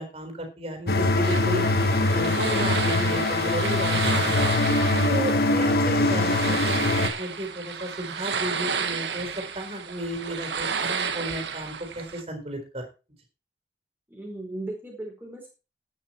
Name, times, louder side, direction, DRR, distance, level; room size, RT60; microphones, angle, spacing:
voice 1, 0.0-4.5 4.8-9.3 9.5-12.8, equal, 35° right, 5 dB, 4.1 m, -34 dB
sound 1, 0.9-7.1, left 2 dB, 60° left, 1.3 m, -23 dB
sound 2, 1.2-12.2, right 6 dB, 85° right, 1.5 m, -32 dB
voice 2, 14.1-15.5, right 2 dB, 10° right, 0 dB, 4.5 m, -36 dB
12.0 x 9.8 x 4.5 m, 0.32 s
head